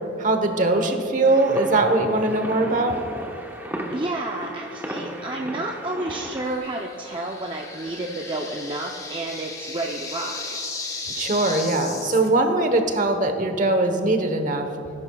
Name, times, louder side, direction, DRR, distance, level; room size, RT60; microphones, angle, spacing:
voice 1, 0.2-3.0 11.1-14.7, right 2 dB, 45° right, 6 dB, 1.0 m, -21 dB
sound 1, 1.2-6.6, equal, 10° right, 1.1 m, -35 dB
voice 2, 3.9-10.8, right 2 dB, 25° right, 0 dB, 0.6 m, -31 dB
sound 2, 6.4-12.3, left 3 dB, 15° left, 0.8 m, -35 dB
19.0 x 11.0 x 2.3 m, 2.9 s
head